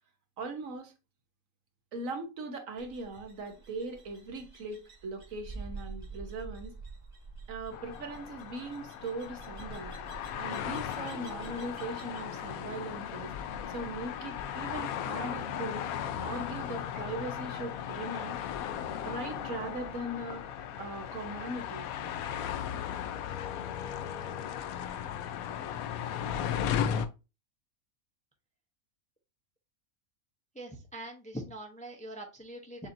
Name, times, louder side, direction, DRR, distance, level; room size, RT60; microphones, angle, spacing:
voice 1, 0.4-0.9 1.9-6.7 7.5-9.9 10.4-13.3 13.7-15.8 16.2-18.4 19.0-20.4 20.8-21.8, right 2 dB, 70° right, 1.3 m, -39 dB
sound 1, 2.8-12.3, right 4 dB, 30° right, 1.3 m, -48 dB
sound 2, 7.7-27.1, left 9 dB, 90° left, 1.0 m, -36 dB
voice 2, 30.5-32.9, right 1 dB, 5° left, 0.6 m, -42 dB
6.8 x 2.7 x 2.6 m
omnidirectional pair, 1.5 m